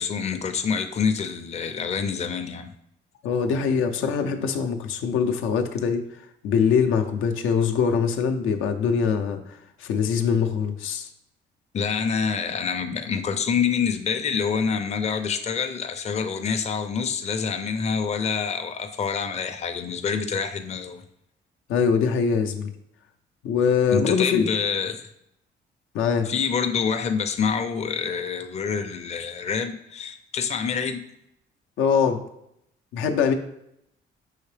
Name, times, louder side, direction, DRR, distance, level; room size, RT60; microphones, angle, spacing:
voice 1, 0.0-2.7 11.7-21.0 23.9-25.1 26.2-31.0, left 6 dB, 35° left, 7 dB, 0.5 m, -26 dB
voice 2, 3.2-6.1 6.4-11.1 21.7-22.7 23.4-24.5 25.9-26.3 31.8-32.2 32.9-33.3, left 6 dB, 85° left, 5 dB, 0.6 m, -23 dB
5.6 x 2.9 x 3.2 m, 0.77 s
cardioid pair, 90°, 20 cm